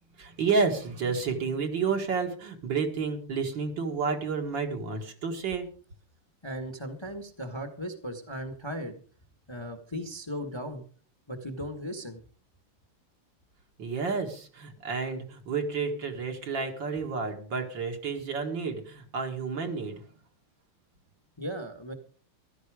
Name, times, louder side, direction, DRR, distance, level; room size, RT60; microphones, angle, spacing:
voice 1, 0.2-5.7 13.8-20.1, right 5 dB, 60° right, 3 dB, 2.6 m, -30 dB
voice 2, 6.4-9.0 9.5-10.8 11.3-12.2 21.4-21.9, equal, 15° left, 7 dB, 1.3 m, -37 dB
15.0 x 12.5 x 4.9 m, 0.42 s
omnidirectional pair, 2.4 m